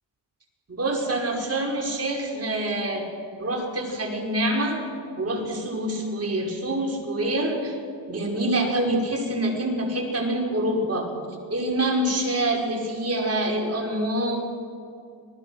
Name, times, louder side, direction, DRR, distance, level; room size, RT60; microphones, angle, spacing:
voice 1, 0.7-3.1 3.4-4.8 5.2-7.8 8.1-11.1 11.5-14.4, right 1 dB, 30° right, 1 dB, 5.3 m, -26 dB
26.5 x 20.0 x 6.4 m, 2.4 s
cardioid pair, 95°, 47 cm